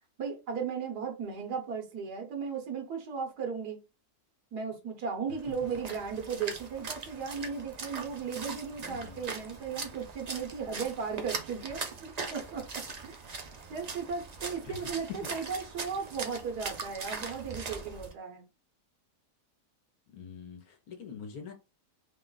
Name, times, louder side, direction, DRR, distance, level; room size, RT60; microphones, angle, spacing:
voice 1, 0.2-3.8 4.5-12.6 13.0-13.2 13.7-18.4, right 6 dB, 80° right, 1.6 m, -36 dB
Splash splatter, 5.4-18.1, right 4 dB, 55° right, 0.4 m, -41 dB
voice 2, 8.8-9.2 14.6-14.8 15.4-15.5 20.1-21.5, left 6 dB, 70° left, 1.3 m, -45 dB
3.7 x 2.3 x 3.8 m
omnidirectional pair, 1.7 m